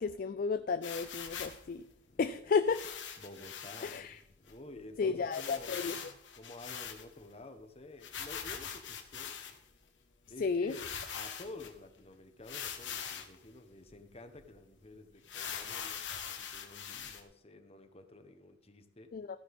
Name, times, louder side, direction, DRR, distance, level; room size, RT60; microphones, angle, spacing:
voice 1, 0.0-1.9 2.2-2.8 3.8-4.2 5.0-6.0 10.4-10.7 19.1-19.4, left 5 dB, 50° left, 12 dB, 0.3 m, -32 dB
sound 1, 0.8-1.6 2.7-4.0 4.5-4.6 4.8-4.9 5.3-7.3 8.0-9.7 10.3-10.4 10.7-11.7 12.4-13.4 13.9-14.0 14.3-14.5 15.2-17.2, left 8 dB, 75° left, 1.4 m, -42 dB
voice 2, 2.1-2.4 3.2-5.9 6.4-9.3 10.3-10.9 11.1-19.1, left 2 dB, 35° left, 7 dB, 1.1 m, -51 dB
14.0 x 9.8 x 3.6 m, 0.82 s
head